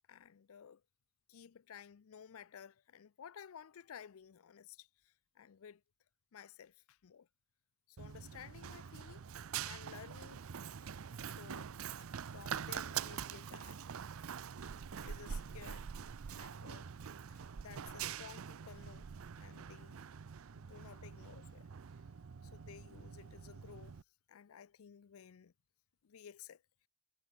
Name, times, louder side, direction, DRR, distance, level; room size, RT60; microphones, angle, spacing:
voice 1, 0.1-0.8 1.3-5.8 6.3-7.3 7.9-9.3 9.6-10.4 11.2-13.8 15.0-15.9 16.3-16.9 17.3-19.1 19.4-20.0 20.5-21.7 22.4-24.0 24.3-25.5 26.0-26.9, left 8 dB, 70° left, 0.4 m, -55 dB
Run, 8.0-24.0, right 8 dB, 65° right, 0.5 m, -45 dB
head